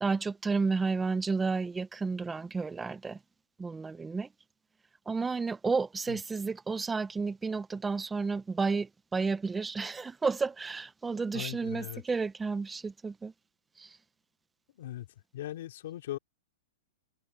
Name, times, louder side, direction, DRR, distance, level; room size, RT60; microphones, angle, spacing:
voice 1, 0.0-3.2 3.6-4.3 5.1-13.3 13.8-14.0, right 4 dB, 10° right, 1.0 m, -31 dB
voice 2, 11.3-12.0 14.8-15.1 15.3-16.2, left 13 dB, 65° left, 3.7 m, -39 dB
hypercardioid pair, 145°, 0 cm